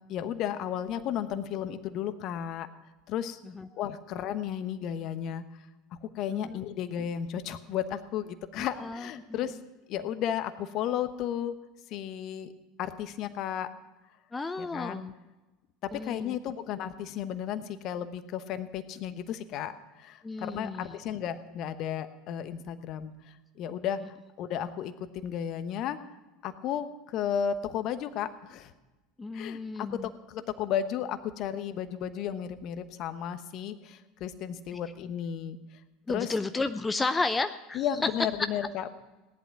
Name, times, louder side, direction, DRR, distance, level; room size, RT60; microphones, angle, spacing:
voice 1, 0.1-2.7 3.1-3.4 3.7-5.4 6.1-9.6 9.9-11.5 11.9-12.5 12.8-13.7 14.6-15.0 16.0-23.1 23.6-24.0 24.4-26.0 26.4-28.7 29.3-29.9 30.3-35.6 36.1-36.3 37.7-38.9, left 9 dB, 45° left, 12 dB, 1.0 m, -33 dB
voice 2, 8.6-9.4 14.3-15.1 15.9-16.3 20.2-20.9 29.2-30.1 36.1-37.9, left 3 dB, 15° left, 10 dB, 0.6 m, -33 dB
17.5 x 11.0 x 6.0 m, 1.1 s
figure-of-eight pair, 75°, 0 cm